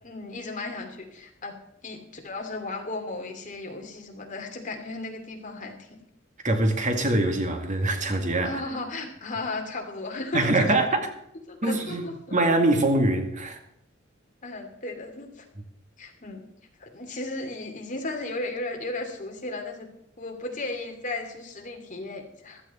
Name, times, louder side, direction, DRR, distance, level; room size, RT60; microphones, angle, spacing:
voice 1, 0.0-1.5 1.8-6.0 8.4-10.7 11.5-12.1 14.4-15.5 16.0-16.4 16.8-19.9 20.2-22.6, left 2 dB, 40° left, 2.7 m, -35 dB
voice 2, 6.4-8.6 10.3-10.9 11.6-12.0 12.3-13.6, right 2 dB, 40° right, 2.1 m, -23 dB
15.0 x 12.5 x 4.3 m
head